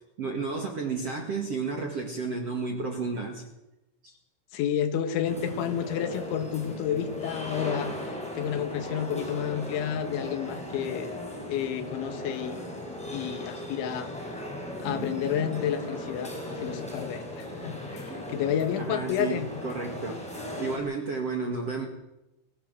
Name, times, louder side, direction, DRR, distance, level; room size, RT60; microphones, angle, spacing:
voice 1, 0.2-3.4 4.0-4.1 18.8-21.9, right 4 dB, 45° right, 2 dB, 2.1 m, -32 dB
voice 2, 4.5-11.1 11.5-14.1 14.8-19.5, left 9 dB, 75° left, 8 dB, 3.9 m, -31 dB
sound 1, 5.2-20.8, left 1 dB, ahead, 5.6 m, -37 dB
22.0 x 16.5 x 7.6 m, 0.95 s
omnidirectional pair, 5.5 m